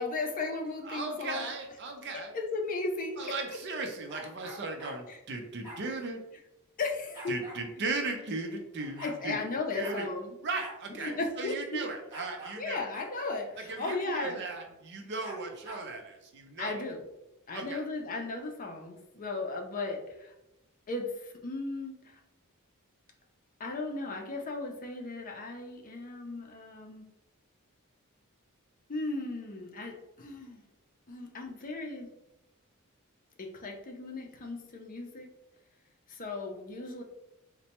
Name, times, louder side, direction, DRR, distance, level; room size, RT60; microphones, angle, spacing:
voice 1, 0.0-1.5 2.0-2.1 2.3-3.2 3.7-3.9 5.1-5.2 6.8-7.4 9.0-10.3 11.0-11.9 12.6-14.4 16.6-17.0 17.5-20.3 20.9-22.2 23.6-27.1 28.9-30.6 31.1-32.1 33.4-35.3 36.1-37.0, left 3 dB, 40° left, 2 dB, 0.5 m, -36 dB
voice 2, 0.8-2.3 3.2-6.2 7.3-9.4 9.7-10.1 10.4-12.9 13.7-16.8 17.5-17.8, right 3 dB, 55° right, 3 dB, 0.6 m, -37 dB
sound 1, 4.1-5.0 5.6-5.8 7.1-7.6 8.5-8.6 8.8-9.2 9.8-10.0 10.6-10.8 11.1-11.2 12.1-12.6 12.9-13.1 13.8-14.0 15.2-15.9, right 1 dB, 20° right, 1.1 m, -45 dB
4.1 x 2.2 x 2.9 m, 0.89 s
head